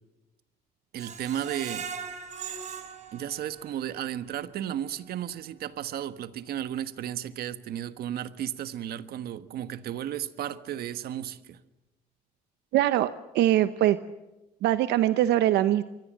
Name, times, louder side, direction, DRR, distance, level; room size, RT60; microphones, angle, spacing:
voice 1, 0.9-1.9 3.1-11.6, right 11 dB, 65° right, 12 dB, 1.4 m, -34 dB
Screech, 1.0-4.0 4.4-4.5 4.9-5.0, right 6 dB, 45° right, 3.9 m, -39 dB
voice 2, 12.7-14.0 14.6-15.8, right 13 dB, 85° right, 12 dB, 0.9 m, -22 dB
27.5 x 24.0 x 7.6 m, 1.0 s
cardioid pair, 130°, 17 cm